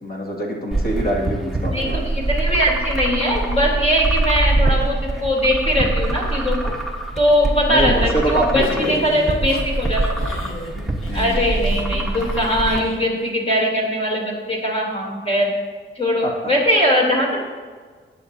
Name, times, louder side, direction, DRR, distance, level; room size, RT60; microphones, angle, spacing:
voice 1, 0.0-2.0 7.7-9.2 11.1-11.5 16.2-16.3, equal, 50° left, -1 dB, 2.3 m, -24 dB
sound 1, 0.7-12.8, right 2 dB, ahead, 1.3 m, -24 dB
voice 2, 1.7-6.7 7.2-10.2 11.1-15.5 15.9-17.4, equal, 30° left, -2 dB, 3.2 m, -20 dB
sound 2, 8.6-13.3, left 1 dB, 80° left, 1.5 m, -36 dB
19.5 x 8.7 x 2.8 m, 1.5 s
wide cardioid pair, 145°, 21 cm